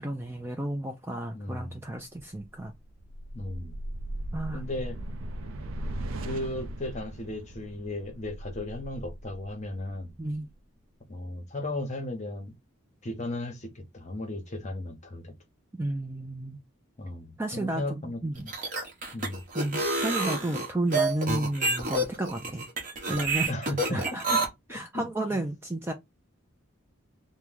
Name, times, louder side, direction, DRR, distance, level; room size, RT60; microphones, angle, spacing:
voice 1, 0.0-2.7 4.3-4.6 10.2-10.5 15.7-16.6 17.4-18.4 19.5-22.7 23.1-23.5 23.9-24.3 24.7-25.9, right 1 dB, 10° right, 0.3 m, -32 dB
voice 2, 1.3-1.8 3.3-3.8 4.5-5.0 6.2-10.1 11.1-12.5 13.0-15.3 17.0-18.5 19.1-19.4 23.4-24.4 24.9-25.4, left 1 dB, 35° left, 0.8 m, -36 dB
sound 1, 2.3-10.6, right 1 dB, 75° right, 0.4 m, -38 dB
sound 2, 18.4-24.4, right 2 dB, 40° right, 0.9 m, -28 dB
3.0 x 2.1 x 3.5 m
head